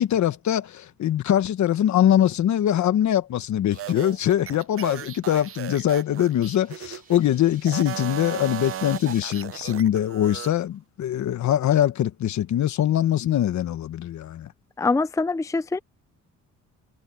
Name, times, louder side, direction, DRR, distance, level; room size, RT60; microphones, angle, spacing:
voice 1, 0.0-14.5, left 11 dB, 70° left, 1.4 m, -23 dB
sound 1, 3.7-7.2 7.6-10.5, right 11 dB, 50° right, 0.6 m, -36 dB
sound 2, 5.2-9.2, right 4 dB, 30° right, 4.1 m, -51 dB
voice 2, 14.8-15.8, left 3 dB, 10° left, 0.6 m, -24 dB
cardioid pair, 90°, 30 cm